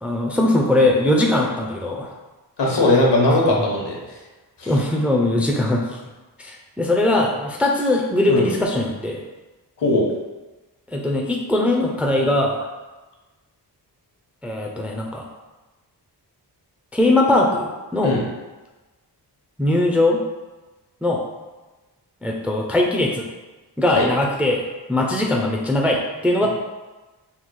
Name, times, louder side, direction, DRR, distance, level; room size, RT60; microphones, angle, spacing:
voice 1, 0.0-2.1 4.6-6.0 6.4-9.2 10.9-12.7 14.4-15.2 16.9-18.1 19.6-20.2 21.0-21.2 22.2-23.3 23.8-24.6 24.9-26.5, left 1 dB, 5° right, 0 dB, 0.3 m, -20 dB
voice 2, 2.6-4.2 4.6-4.7 8.3-8.5 9.8-10.1 18.0-18.2 23.9-24.1, left 2 dB, 75° left, -2 dB, 1.1 m, -19 dB
3.7 x 2.3 x 4.5 m, 1.2 s
wide cardioid pair, 160°, 41 cm